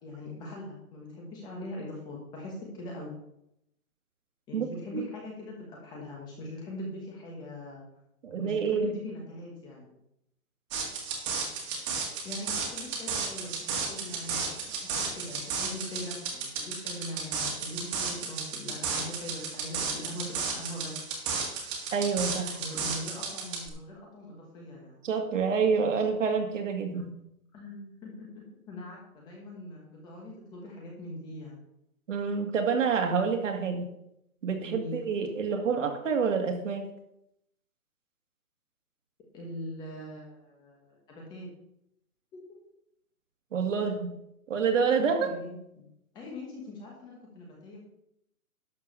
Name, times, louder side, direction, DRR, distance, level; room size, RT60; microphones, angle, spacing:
voice 1, 0.0-3.2 4.5-7.8 8.4-9.9 12.2-20.9 22.6-25.0 26.9-27.0 27.5-31.6 34.6-35.0 39.3-41.5 45.0-45.9 46.1-47.9, left 1 dB, 10° left, -1 dB, 1.2 m, -41 dB
voice 2, 8.2-8.9 21.9-22.6 25.0-27.1 32.1-33.9 34.4-36.9 43.5-44.1 44.5-45.3, right 5 dB, 55° right, 4 dB, 2.3 m, -27 dB
sound 1, 10.7-23.7, right 5 dB, 20° right, 1.8 m, -33 dB
12.0 x 4.7 x 6.9 m, 0.79 s
hypercardioid pair, 165°, 44 cm